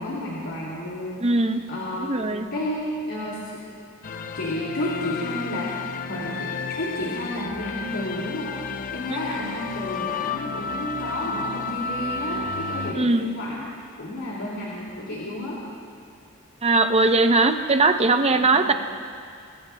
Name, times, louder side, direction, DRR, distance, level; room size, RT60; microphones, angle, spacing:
voice 1, 0.0-3.6 4.3-8.6 8.9-13.7 14.0-15.6 18.3-18.7, left 1 dB, 70° left, -6 dB, 2.5 m, -31 dB
voice 2, 1.2-1.6 2.0-2.5 13.0-13.3 16.6-18.7, right 3 dB, 30° right, 7 dB, 0.7 m, -20 dB
sound 1, 4.0-12.9, left 5 dB, 40° left, 0.5 m, -32 dB
25.5 x 20.5 x 2.3 m, 2.4 s
head